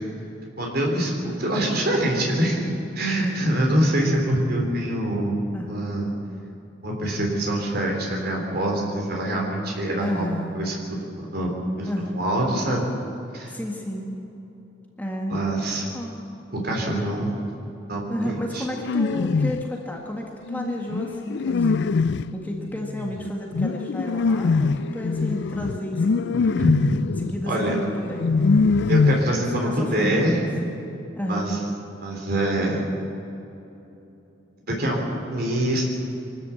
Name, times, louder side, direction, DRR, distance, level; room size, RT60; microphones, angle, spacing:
voice 1, 0.6-2.7 3.0-5.4 5.7-6.1 6.8-10.7 11.2-11.9 12.1-12.9 13.3-13.5 15.3-15.8 16.6-17.4 17.9-18.6 26.6-26.8 27.5-27.8 28.9-30.4 31.3-31.6 32.0-32.9 34.7-35.9, right 1 dB, 55° right, -1 dB, 3.6 m, -25 dB
voice 2, 3.0-3.5 5.5-5.8 10.0-10.6 11.9-12.3 13.5-14.1 15.0-15.4 15.9-16.3 18.1-21.8 22.3-26.6 27.2-28.3 28.6-28.9 29.6-30.5 31.2-31.6, equal, 10° left, 0 dB, 1.7 m, -32 dB
sound 1, 18.7-19.7 20.5-29.6, left 4 dB, 60° left, 0.4 m, -23 dB
24.0 x 13.0 x 8.5 m, 3.0 s
head